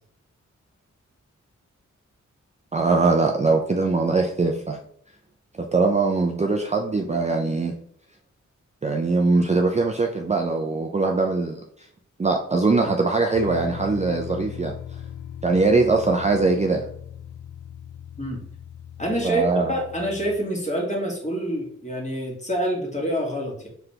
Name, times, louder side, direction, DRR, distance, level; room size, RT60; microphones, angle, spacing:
voice 1, 2.7-4.8 5.6-7.7 8.8-11.6 12.2-14.7 15.4-16.9 19.2-19.7, right 3 dB, 25° right, 2 dB, 0.4 m, -21 dB
sound 1, 13.3-20.4, left 9 dB, 85° left, 0.5 m, -39 dB
voice 2, 19.0-23.7, equal, 25° left, -2 dB, 1.6 m, -27 dB
3.9 x 3.3 x 2.8 m, 0.64 s
cardioid pair, 55°, 30 cm